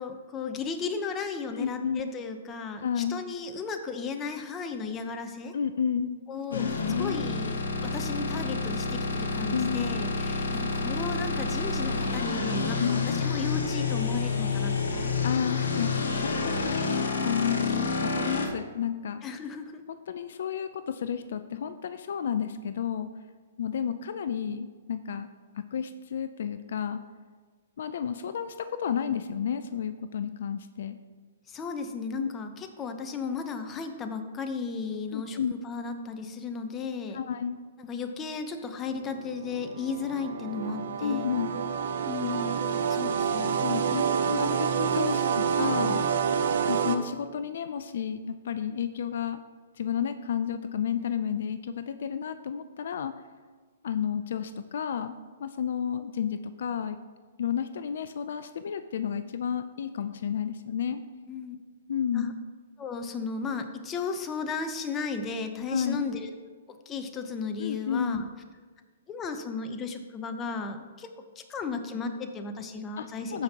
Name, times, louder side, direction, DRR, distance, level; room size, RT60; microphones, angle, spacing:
voice 1, 0.0-5.5 6.3-6.6 7.0-15.1 19.2-19.8 31.5-37.2 37.8-41.3 42.1-43.6 61.3-61.6 62.1-62.3 62.8-66.3 66.7-68.2 69.1-71.1 71.4-73.4, left 5 dB, 20° left, 6 dB, 0.8 m, -35 dB
voice 2, 1.5-2.0 2.8-3.2 5.5-6.2 6.5-7.2 9.5-10.0 12.8-13.2 15.2-19.2 19.9-23.1 23.6-25.3 25.5-27.0 27.8-31.0 32.2-32.3 35.1-35.5 37.1-37.6 41.0-41.5 43.6-46.0 46.7-49.4 49.8-53.1 53.8-57.0 57.4-61.0 61.9-62.3 65.7-66.1 67.6-68.2 73.0-73.4, left 8 dB, 65° left, 10 dB, 0.4 m, -31 dB
sound 1, 6.5-18.5, left 4 dB, 85° left, 1.3 m, -29 dB
sound 2, 39.0-47.0, right 7 dB, 65° right, 0.7 m, -28 dB
14.5 x 5.2 x 2.9 m, 1.5 s
hypercardioid pair, 135°, 0 cm